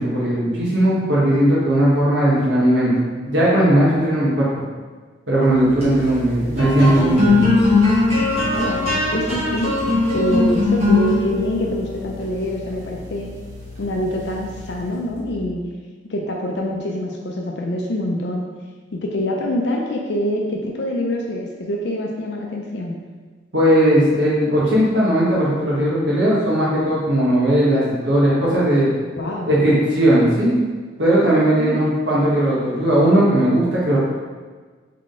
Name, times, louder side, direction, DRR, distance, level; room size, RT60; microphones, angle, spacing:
voice 1, 0.0-2.9 3.3-4.6 5.3-7.5 23.5-28.9 29.5-30.5 31.0-34.0, right 1 dB, 85° right, -7 dB, 1.2 m, -17 dB
sound 1, 5.6-15.2, left 3 dB, 35° right, 1.4 m, -21 dB
voice 2, 8.5-8.8 9.1-9.7 10.1-13.3 13.8-15.6 16.1-18.4 18.9-23.0 29.1-29.6 31.6-31.8, left 1 dB, 65° left, 0 dB, 0.5 m, -25 dB
3.8 x 3.7 x 3.7 m, 1.4 s
head